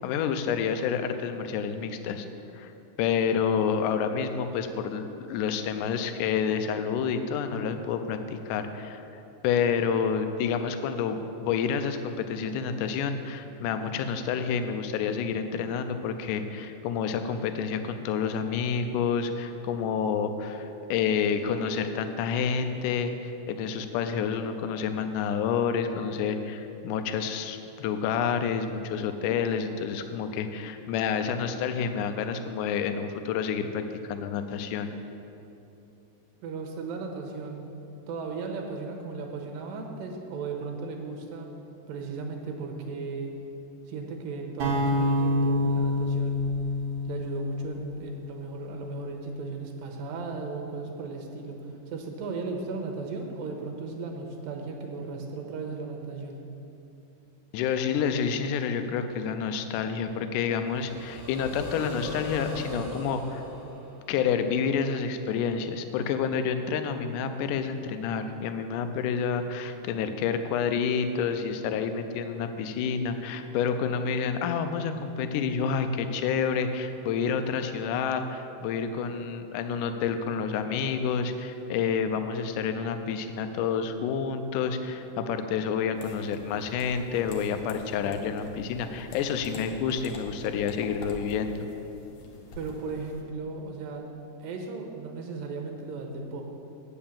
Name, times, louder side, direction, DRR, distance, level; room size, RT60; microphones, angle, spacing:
voice 1, 0.0-2.3 2.6-2.7 3.0-8.2 8.5-34.9 57.5-63.4 64.1-91.7, left 6 dB, 85° left, 8 dB, 1.8 m, -29 dB
voice 2, 36.4-37.7 38.1-41.5 41.9-43.3 43.9-46.5 47.1-56.4 92.6-94.1 94.4-96.4, right 4 dB, 80° right, 2 dB, 2.6 m, -36 dB
sound 1, 44.6-48.7, left 1 dB, 60° right, 2.3 m, -27 dB
sound 2, 60.5-64.5, equal, 10° right, 1.0 m, -39 dB
sound 3, 85.9-93.2, left 1 dB, 65° left, 2.1 m, -45 dB
8.7 x 5.8 x 7.2 m, 2.9 s
omnidirectional pair, 4.2 m